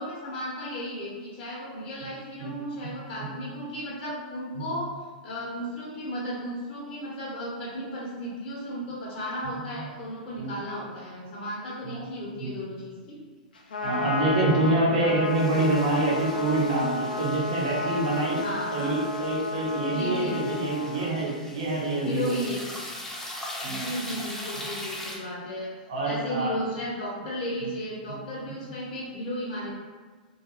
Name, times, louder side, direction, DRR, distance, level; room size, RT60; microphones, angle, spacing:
voice 1, 0.0-4.9 5.2-13.2 18.4-18.9 19.9-20.4 22.0-22.7 23.6-25.7 26.0-29.7, equal, 55° left, -8 dB, 0.7 m, -34 dB
voice 2, 9.4-9.8 10.4-10.5 11.8-12.0 12.4-12.5 13.8-18.4 18.7-22.4 23.6-23.9 25.9-26.5 28.1-28.2 28.5-28.7, right 2 dB, 65° right, -4 dB, 0.8 m, -26 dB
Trumpet, 13.5-21.1, left 3 dB, 90° left, 0.4 m, -32 dB
sound 1, 15.3-25.2, left 1 dB, 10° left, 0.5 m, -41 dB
2.2 x 2.2 x 2.9 m, 1.4 s
hypercardioid pair, 115°, 5 cm